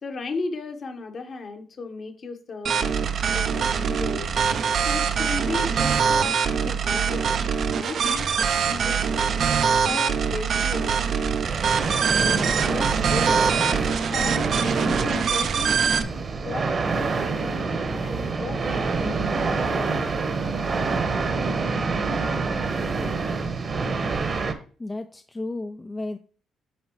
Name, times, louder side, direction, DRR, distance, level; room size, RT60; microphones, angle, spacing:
voice 1, 0.0-2.9 3.3-4.3 4.8-7.4 7.7-9.4 9.8-11.0 12.1-16.0 16.4-16.7 17.1-17.6 18.0-20.0, left 3 dB, 45° left, 5 dB, 1.2 m, -35 dB
sound 1, 2.7-16.0, right 6 dB, 60° right, 0.6 m, -23 dB
sound 2, 11.4-24.5, right 4 dB, 40° right, 1.1 m, -27 dB
voice 2, 24.8-26.2, left 2 dB, 20° left, 7 dB, 0.4 m, -33 dB
8.9 x 5.3 x 3.1 m, 0.40 s
cardioid pair, 90°, 0 cm